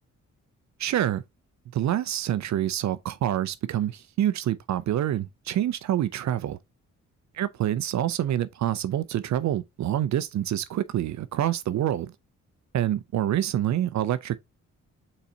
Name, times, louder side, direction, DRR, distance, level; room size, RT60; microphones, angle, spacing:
voice 1, 0.8-1.2 1.7-6.6 7.4-12.1 12.7-14.4, right 12 dB, 55° right, 0.5 m, -26 dB
4.1 x 3.9 x 2.6 m
hypercardioid pair, 45°, 34 cm